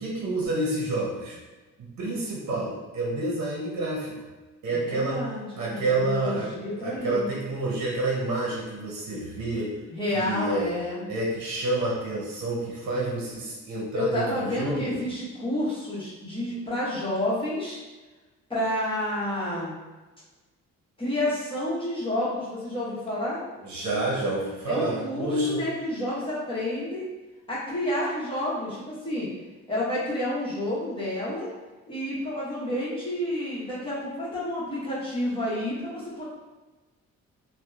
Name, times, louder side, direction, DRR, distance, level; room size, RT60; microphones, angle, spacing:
voice 1, 0.0-1.4 1.8-4.2 4.6-5.2 5.5-6.5 6.8-9.7 10.1-10.7 11.1-15.0 23.6-25.6, right 2 dB, 65° right, -4 dB, 0.8 m, -28 dB
voice 2, 4.7-7.4 9.9-11.1 13.9-17.8 18.5-19.7 21.0-23.4 24.7-27.1 27.5-29.3 29.7-31.5 31.9-36.2, left 1 dB, 15° left, -8 dB, 1.0 m, -30 dB
2.8 x 2.1 x 2.3 m, 1.2 s
cardioid pair, 90°, 30 cm